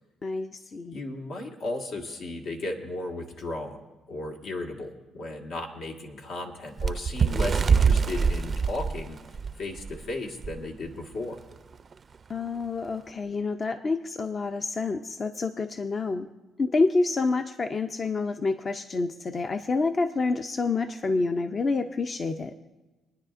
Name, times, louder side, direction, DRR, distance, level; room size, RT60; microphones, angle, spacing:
voice 1, 0.2-1.0 12.3-16.3 16.6-22.5, left 3 dB, 40° left, 8 dB, 0.5 m, -28 dB
voice 2, 0.9-3.8 4.1-9.2 9.5-11.4, left 2 dB, 75° left, 1 dB, 1.6 m, -35 dB
Bird, 6.8-10.0 10.4-10.6 10.9-11.1 11.9-12.0, right 5 dB, 40° right, 0.4 m, -24 dB
27.5 x 9.9 x 2.5 m, 1.2 s
cardioid pair, 90°, 0 cm